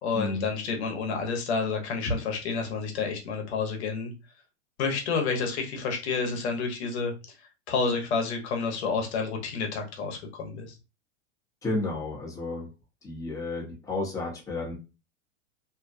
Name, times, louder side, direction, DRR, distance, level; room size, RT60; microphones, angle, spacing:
voice 1, 0.0-4.1 4.8-7.1 7.7-10.7, left 4 dB, 65° left, 0.9 m, -29 dB
voice 2, 11.6-12.7 13.0-14.8, left 2 dB, 10° left, 0.8 m, -32 dB
2.7 x 2.3 x 2.5 m
hypercardioid pair, 140°, 36 cm